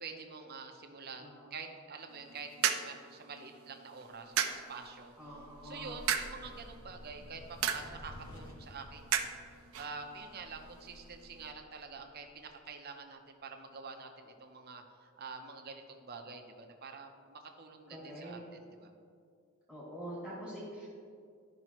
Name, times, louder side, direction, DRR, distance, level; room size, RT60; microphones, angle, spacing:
voice 1, 0.0-5.1 5.6-9.3 9.8-18.9, right 4 dB, 50° right, 4 dB, 0.8 m, -47 dB
sound 1, 2.1-11.5, right 8 dB, 80° right, 0.5 m, -38 dB
sound 2, 4.5-12.7, left 1 dB, 65° left, 0.7 m, -54 dB
voice 2, 5.2-6.0 17.9-18.4 19.7-20.9, equal, 10° left, -7 dB, 1.8 m, -45 dB
12.5 x 5.4 x 3.0 m, 2.3 s
head